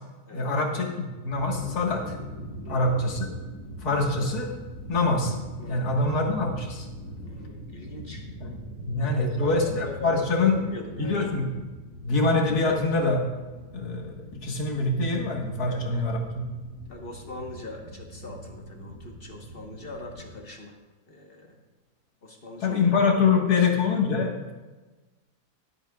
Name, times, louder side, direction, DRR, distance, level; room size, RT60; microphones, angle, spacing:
voice 1, 0.3-2.2 2.7-3.3 3.8-4.5 4.9-5.4 5.7-6.9 8.4-8.5 8.8-10.6 11.0-11.7 12.0-13.2 13.7-16.4 22.6-24.5, left 3 dB, 70° left, 1 dB, 2.1 m, -25 dB
sound 1, 1.3-20.3, right 1 dB, 40° right, 3.4 m, -42 dB
voice 2, 7.2-8.2 9.1-11.3 15.7-16.0 16.9-20.8 21.1-21.6 22.2-22.8 23.5-23.7, left 2 dB, 40° left, 1 dB, 1.3 m, -40 dB
20.5 x 8.2 x 2.4 m, 1.2 s
omnidirectional pair, 1.7 m